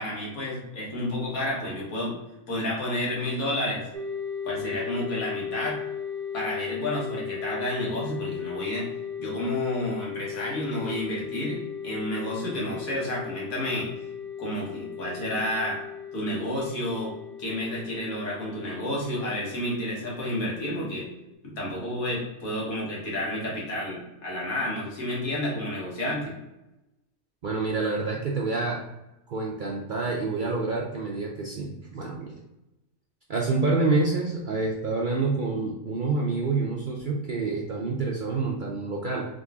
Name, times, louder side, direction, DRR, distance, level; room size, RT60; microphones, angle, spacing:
voice 1, 0.0-2.1 2.5-3.9 4.4-5.8 6.3-8.9 9.2-13.9 14.4-15.8 16.1-21.1 21.4-26.3, left 1 dB, 75° left, -4 dB, 1.8 m, -30 dB
sound 1, 3.9-21.3, left 7 dB, 50° right, 0.9 m, -37 dB
voice 2, 27.4-28.8 29.3-32.3 33.3-39.2, right 3 dB, 80° right, -2 dB, 0.4 m, -27 dB
3.8 x 3.0 x 3.5 m, 0.97 s
omnidirectional pair, 1.5 m